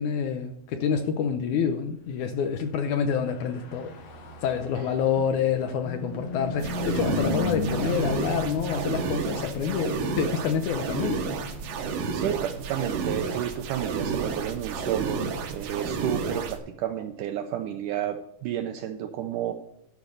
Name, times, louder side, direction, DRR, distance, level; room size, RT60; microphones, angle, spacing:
voice 1, 0.0-3.9 4.4-11.3, left 7 dB, 80° left, 7 dB, 1.7 m, -27 dB
Car passing by / Truck, 3.0-16.6, left 2 dB, 60° left, 1.9 m, -37 dB
sound 1, 6.6-16.6, right 5 dB, 70° right, 1.6 m, -31 dB
voice 2, 12.1-19.5, right 10 dB, 85° right, 6 dB, 1.8 m, -31 dB
12.0 x 5.3 x 6.5 m, 0.74 s
omnidirectional pair, 4.4 m